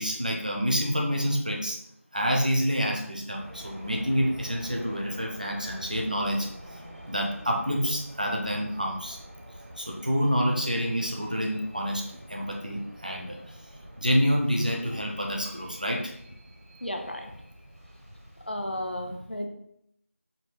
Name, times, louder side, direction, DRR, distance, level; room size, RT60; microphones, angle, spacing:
voice 1, 0.0-1.8 2.1-6.5 7.1-9.2 9.8-13.6 14.0-16.1, equal, 35° right, -1 dB, 0.5 m, -28 dB
sound 1, 3.4-18.5, equal, 85° right, 1.3 m, -46 dB
voice 2, 16.8-17.3 18.5-19.5, left 1 dB, 45° left, 3 dB, 0.5 m, -33 dB
4.9 x 2.1 x 3.2 m, 0.72 s
figure-of-eight pair, 175°, 8 cm